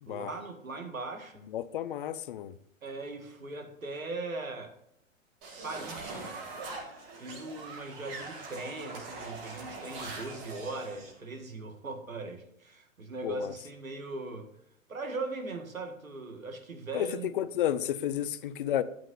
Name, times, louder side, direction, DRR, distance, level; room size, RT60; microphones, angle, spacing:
voice 1, 0.1-1.5 2.8-4.8 5.6-6.3 7.2-14.5 14.9-17.4, right 2 dB, 75° right, 6 dB, 1.9 m, -39 dB
voice 2, 1.5-2.5 13.2-13.5 16.9-17.1 17.3-18.8, left 11 dB, 40° left, 15 dB, 0.6 m, -31 dB
sound 1, 5.4-11.1, right 3 dB, 40° right, 2.5 m, -42 dB
12.5 x 8.7 x 2.6 m, 0.76 s
figure-of-eight pair, 110°, 41 cm